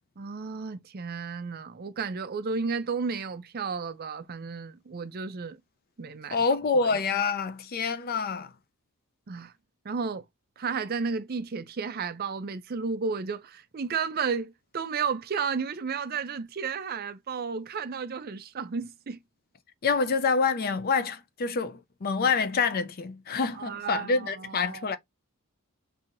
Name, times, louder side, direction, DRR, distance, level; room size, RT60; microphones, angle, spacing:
voice 1, 0.2-5.6 6.0-6.4 9.3-9.5 9.8-10.2 10.6-19.2 23.5-24.9, right 5 dB, 45° right, 0.5 m, -33 dB
voice 2, 6.3-8.5 19.8-25.0, left 4 dB, 45° left, 0.5 m, -27 dB
5.5 x 2.7 x 2.5 m
head